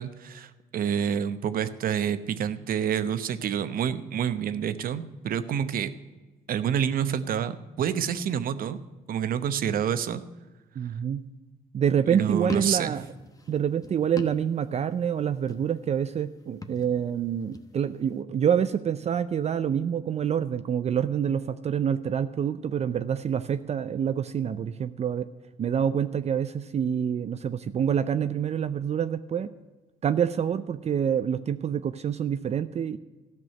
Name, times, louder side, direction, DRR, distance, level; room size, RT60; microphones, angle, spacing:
voice 1, 0.0-5.9 6.5-8.8 9.1-10.2 12.1-12.9, right 8 dB, 65° right, 12 dB, 0.8 m, -28 dB
voice 2, 10.8-11.3 11.7-13.1 13.5-25.3 25.6-29.5 30.0-33.0, right 8 dB, 45° right, 11 dB, 0.5 m, -27 dB
sound 1, 12.4-15.0 15.3-15.9 16.5-17.7, left 3 dB, 20° left, 1.0 m, -41 dB
14.0 x 6.1 x 8.9 m, 1.2 s
cardioid pair, 105°, 16 cm